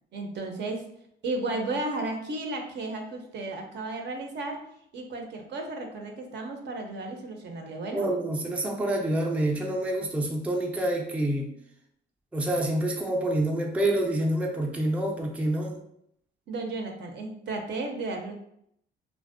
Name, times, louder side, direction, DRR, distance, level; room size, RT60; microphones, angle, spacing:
voice 1, 0.1-0.8 1.2-4.6 4.9-8.1 16.5-18.3, right 2 dB, 60° right, 3 dB, 0.5 m, -33 dB
voice 2, 7.9-11.5 12.3-15.8, right 1 dB, 5° right, 0 dB, 0.4 m, -27 dB
2.4 x 2.0 x 2.5 m, 0.73 s
cardioid pair, 90°, 20 cm